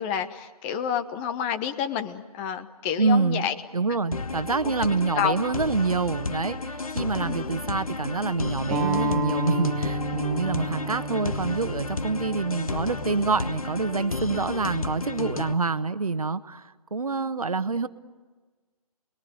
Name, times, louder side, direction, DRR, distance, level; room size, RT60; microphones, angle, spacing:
voice 1, 0.0-3.5 4.6-4.7 5.1-5.4 7.2-7.5, left 8 dB, 20° left, 10 dB, 1.1 m, -29 dB
voice 2, 3.0-3.5 3.7-17.9, right 4 dB, 70° right, 12 dB, 1.3 m, -26 dB
sound 1, 4.1-15.5, left 3 dB, 65° left, 1.4 m, -32 dB
sound 2, 8.7-13.9, right 1 dB, 5° right, 3.1 m, -32 dB
29.0 x 21.5 x 9.4 m, 1.4 s
figure-of-eight pair, 140°, 19 cm